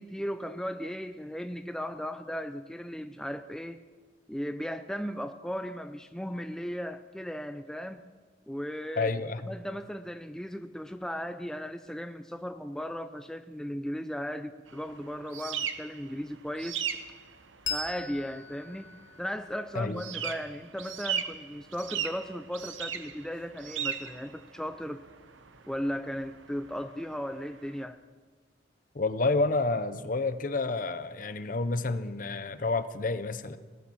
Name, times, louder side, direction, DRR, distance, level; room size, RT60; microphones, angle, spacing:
voice 1, 0.0-3.8 4.3-8.0 8.5-9.1 9.5-16.9 17.7-18.9 19.2-25.0 25.7-28.0, equal, 5° left, 8 dB, 0.4 m, -36 dB
voice 2, 9.0-9.5 19.7-20.0 28.9-33.6, left 3 dB, 45° left, 12 dB, 0.7 m, -29 dB
sound 1, 14.7-27.8, right 8 dB, 85° right, 1.0 m, -39 dB
Bell, 17.6-20.7, left 4 dB, 85° left, 1.7 m, -40 dB
17.5 x 8.8 x 7.2 m, 1.4 s
head